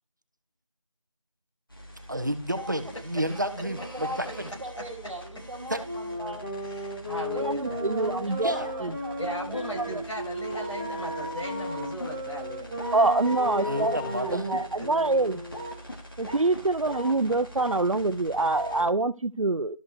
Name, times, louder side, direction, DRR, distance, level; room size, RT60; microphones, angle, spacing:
sound 1, 1.7-18.9, left 1 dB, 45° left, 2.4 m, -41 dB
voice 1, 2.1-4.3 5.7-5.8 8.4-8.7 13.6-14.5, equal, 35° right, 1.0 m, -30 dB
voice 2, 3.3-6.4 7.3-10.0, right 1 dB, 5° left, 2.1 m, -39 dB
sound 2, 5.8-15.8, left 1 dB, 25° left, 3.0 m, -36 dB
voice 3, 6.6-7.4 9.2-12.8 13.3-13.4 14.8-14.9 16.3-16.4, equal, 70° left, 6.8 m, -37 dB
voice 4, 7.4-8.5 8.8-8.9 9.9-10.0 12.9-15.4 16.2-19.8, right 3 dB, 85° right, 0.8 m, -25 dB
12.5 x 5.4 x 4.8 m
figure-of-eight pair, 180°, 17 cm